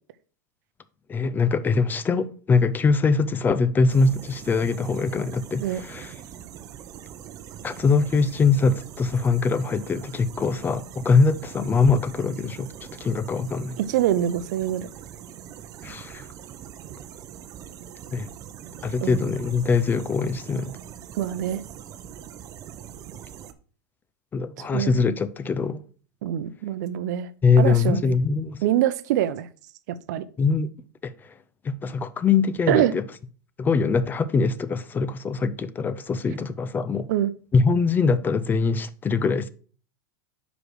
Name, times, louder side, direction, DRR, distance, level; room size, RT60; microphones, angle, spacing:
voice 1, 1.1-6.1 7.6-12.7 13.0-13.8 15.8-16.3 18.1-18.3 18.8-20.8 24.3-25.8 27.4-28.6 30.4-30.7 31.0-31.1 31.6-33.0 33.6-37.1 37.5-39.5, left 4 dB, 20° left, 0.5 m, -22 dB
sound 1, 3.9-23.5, right 9 dB, 35° right, 0.7 m, -42 dB
voice 2, 13.8-14.9 19.0-19.2 21.2-21.6 24.6-25.0 26.2-27.3 27.6-28.1 28.6-29.5 30.1-30.2 32.7-32.9 37.1-37.3, right 12 dB, 70° right, 0.6 m, -24 dB
5.1 x 4.9 x 6.1 m
supercardioid pair, 120°, 10 cm